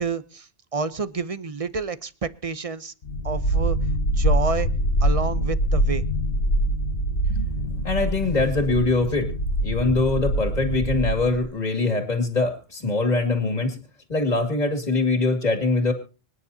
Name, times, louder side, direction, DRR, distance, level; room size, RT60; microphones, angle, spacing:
voice 1, 0.0-2.9 3.2-3.8 4.2-4.7 5.0-6.0, right 4 dB, 35° right, 14 dB, 0.7 m, -29 dB
sound 1, 3.0-11.5, right 1 dB, 60° left, 1.4 m, -24 dB
voice 2, 7.3-9.3 9.6-13.8 14.1-15.9, left 3 dB, 35° left, 5 dB, 2.4 m, -23 dB
26.0 x 9.7 x 2.8 m, 0.34 s
omnidirectional pair, 1.2 m